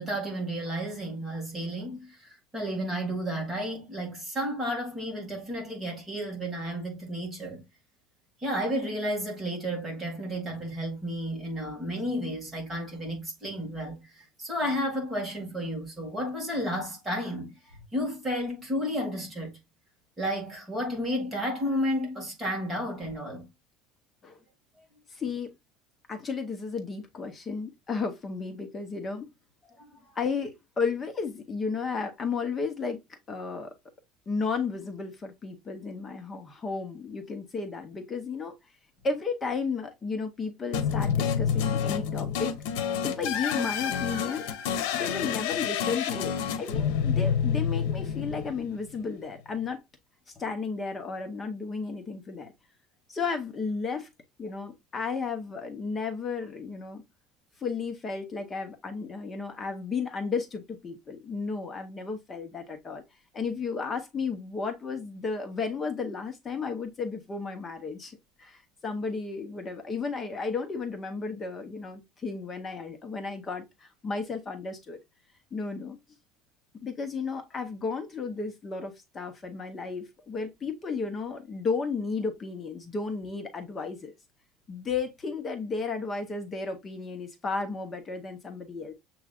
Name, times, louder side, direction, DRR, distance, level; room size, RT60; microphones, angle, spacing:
voice 1, 0.0-7.7 8.4-19.6 20.2-23.5 24.7-24.8 29.8-30.0, equal, 10° right, 2.0 m, -32 dB
voice 2, 25.1-25.5 26.1-29.3 30.2-33.0 33.3-33.7 34.3-38.5 39.0-42.5 43.0-44.5 44.9-49.8 50.4-52.5 53.1-54.1 54.4-57.0 57.6-63.0 63.3-75.0 75.5-76.0 76.8-84.1 84.7-88.9, left 4 dB, 20° left, 0.7 m, -33 dB
sound 1, 40.7-49.0, left 8 dB, 80° left, 0.8 m, -28 dB
7.1 x 3.1 x 2.3 m
cardioid pair, 175°, 0 cm